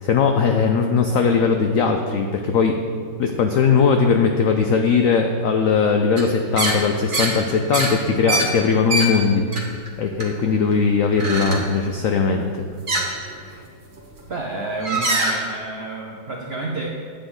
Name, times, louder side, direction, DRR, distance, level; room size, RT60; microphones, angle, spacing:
voice 1, 0.0-2.8 3.2-9.4 10.0-12.7 13.4-13.6, left 5 dB, 85° left, 4 dB, 0.7 m, -19 dB
sound 1, 6.2-6.3 6.6-6.8 7.1-7.3 7.7-9.1 9.5-9.9 10.2-10.7 11.1-11.7 12.9-13.1 14.0-14.2 14.7-15.4, right 2 dB, 35° right, 1.0 m, -23 dB
voice 2, 14.3-16.9, right 3 dB, 65° right, -1 dB, 0.6 m, -29 dB
8.6 x 8.2 x 3.8 m, 2.1 s
omnidirectional pair, 2.0 m